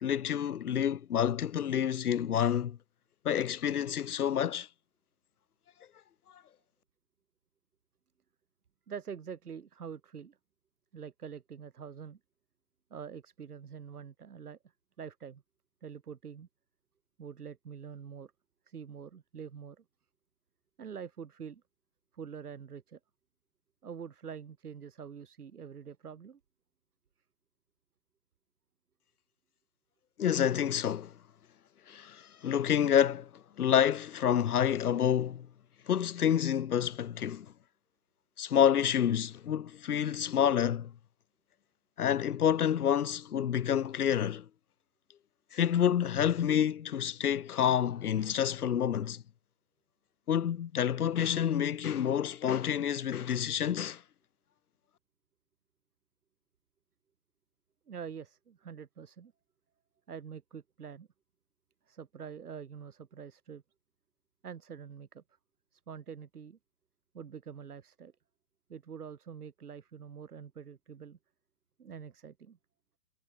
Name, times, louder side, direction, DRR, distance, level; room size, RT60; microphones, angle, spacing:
voice 1, 0.0-2.8 3.2-4.7 30.2-31.1 31.9-33.3 33.6-35.5 35.9-37.5 38.4-40.9 42.0-44.4 45.5-49.2 50.3-54.0, left 9 dB, 80° left, 1.4 m, -28 dB
voice 2, 8.9-10.4 10.9-12.2 12.9-14.6 15.0-15.4 15.8-16.5 17.2-18.3 18.7-19.8 20.8-21.6 22.1-23.0 23.8-26.4 57.9-59.3 60.1-61.1 61.9-63.6 64.4-65.2 65.7-66.6 67.1-68.1 68.7-71.2 71.8-72.6, right 7 dB, 85° right, 4.0 m, -45 dB
hypercardioid pair, 150°, 44 cm